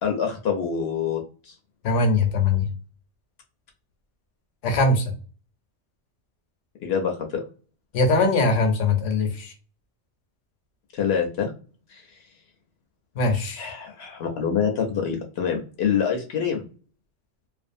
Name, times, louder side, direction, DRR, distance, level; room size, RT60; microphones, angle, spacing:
voice 1, 0.0-1.5 6.8-7.4 10.9-11.5 11.9-12.1 13.6-16.7, left 7 dB, 65° left, 3 dB, 0.7 m, -26 dB
voice 2, 1.8-2.7 4.6-5.1 7.9-9.5 13.2-13.7, left 3 dB, 85° left, 4 dB, 1.0 m, -21 dB
2.4 x 2.3 x 2.5 m, 0.38 s
omnidirectional pair, 1.2 m